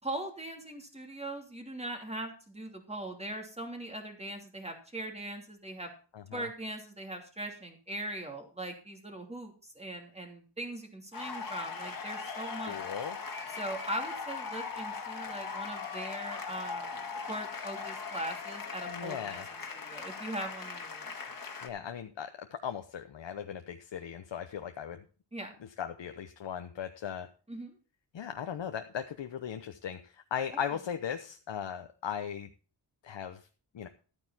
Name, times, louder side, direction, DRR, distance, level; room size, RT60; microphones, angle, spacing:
voice 1, 0.0-5.9 6.3-12.8 13.5-17.0 17.3-21.1 25.3-25.5 27.5-27.7 30.5-30.6, right 1 dB, 15° right, 3 dB, 2.9 m, -40 dB
voice 2, 6.1-6.5 12.7-13.2 18.9-19.4 21.6-25.0 25.8-27.3 28.1-32.5 33.0-33.4 33.7-33.9, left 8 dB, 85° left, 7 dB, 0.9 m, -38 dB
sound 1, 11.1-21.7, left 5 dB, 50° left, 1.9 m, -39 dB
13.0 x 9.1 x 4.2 m, 0.37 s
wide cardioid pair, 145°, 43 cm